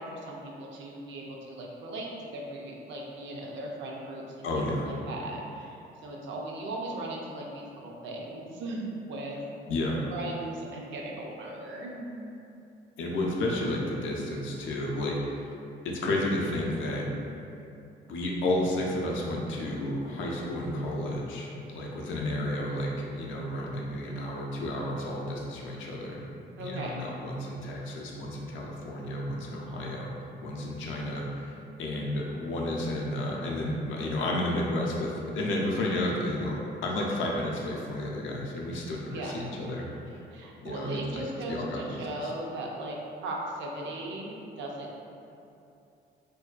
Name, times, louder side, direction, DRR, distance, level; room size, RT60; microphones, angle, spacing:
voice 1, 0.0-5.8 6.0-9.4 10.1-12.1 26.6-27.0 39.0-39.4 40.3-45.0, right 1 dB, 70° right, -1 dB, 0.4 m, -38 dB
voice 2, 4.4-4.9 9.7-10.0 13.0-15.5 15.8-17.1 18.1-26.3 26.6-30.1 30.4-31.5 31.8-39.9 40.1-40.2 40.6-42.3, left 1 dB, 75° left, -2 dB, 0.4 m, -32 dB
2.6 x 2.2 x 2.3 m, 2.7 s
cardioid pair, 90°, 20 cm